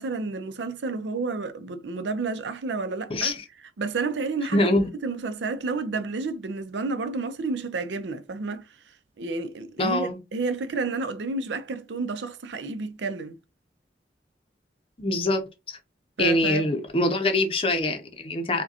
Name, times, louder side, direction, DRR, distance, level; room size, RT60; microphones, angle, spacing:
voice 1, 0.0-3.3 3.8-4.6 5.0-8.7 9.2-13.4 16.2-16.7, right 3 dB, 90° right, 0.5 m, -30 dB
voice 2, 3.1-3.4 4.5-4.9 9.8-10.2 15.0-15.8 16.2-18.6, left 1 dB, 30° left, 0.6 m, -24 dB
4.9 x 2.2 x 2.7 m
head